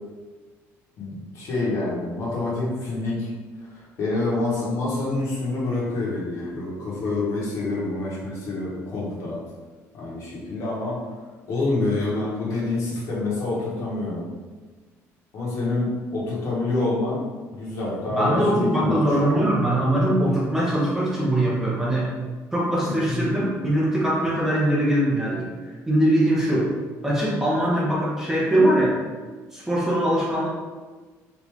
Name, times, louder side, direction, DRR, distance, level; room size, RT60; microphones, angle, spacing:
voice 1, 1.0-3.3 3.7-9.4 9.9-11.0 11.5-14.3 15.3-17.2 17.5-19.5 23.1-23.2, left 2 dB, 60° left, -5 dB, 1.1 m, -27 dB
voice 2, 18.1-22.1 22.5-26.7 27.0-29.0 29.5-30.5, right 1 dB, 5° right, -6 dB, 0.7 m, -22 dB
3.1 x 2.5 x 3.4 m, 1.4 s
cardioid pair, 145°, 6 cm